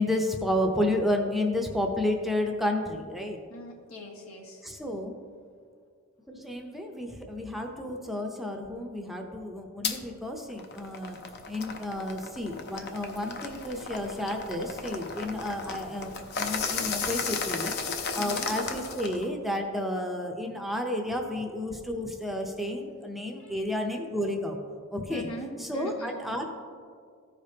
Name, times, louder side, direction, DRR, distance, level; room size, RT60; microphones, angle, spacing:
voice 1, 0.0-3.4 4.6-5.2 6.3-11.2 11.5-17.8 18.1-24.6 24.9-25.3 25.6-26.5, left 1 dB, ahead, 2 dB, 0.6 m, -31 dB
voice 2, 3.5-4.7 18.1-18.5 23.4-23.6 25.1-26.4, equal, 90° left, -2 dB, 1.5 m, -42 dB
sound 1, 9.8-10.0 10.5-19.3, left 5 dB, 50° left, 0.6 m, -34 dB
14.5 x 5.1 x 2.8 m, 2.1 s
head